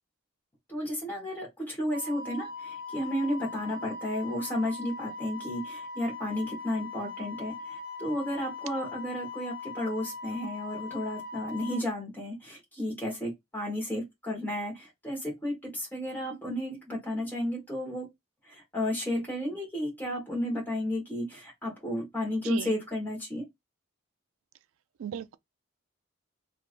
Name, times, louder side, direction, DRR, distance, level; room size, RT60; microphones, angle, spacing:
voice 1, 0.7-18.1 18.5-23.4, left 1 dB, 10° left, 1.4 m, -33 dB
Wind instrument woodwind instrument, 1.9-11.8, left 4 dB, 50° left, 0.8 m, -40 dB
voice 2, 25.0-25.4, right 9 dB, 85° right, 0.3 m, -36 dB
3.3 x 2.8 x 2.5 m
head